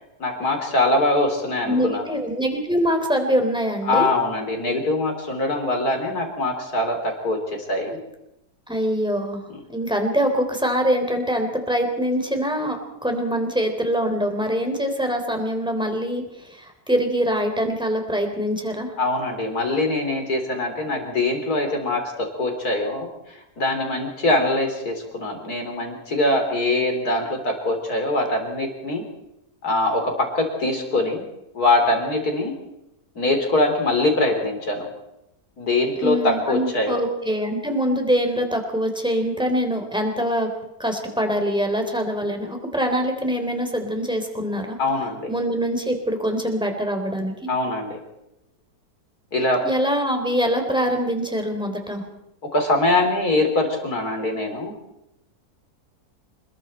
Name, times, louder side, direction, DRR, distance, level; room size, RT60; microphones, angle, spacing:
voice 1, 0.2-2.1 3.9-7.4 7.7-8.0 19.0-23.1 23.6-29.0 29.6-31.2 31.5-32.5 33.2-34.9 35.6-37.0 44.8-45.3 47.5-48.0 49.3-49.6 52.5-54.7, left 2 dB, 75° left, 3 dB, 4.4 m, -23 dB
voice 2, 1.7-4.1 7.9-8.0 8.7-9.4 9.7-18.9 36.0-40.5 40.8-44.8 45.3-47.5 49.6-52.0, equal, 5° right, 4 dB, 3.6 m, -24 dB
28.5 x 21.0 x 4.5 m, 0.86 s
omnidirectional pair, 1.6 m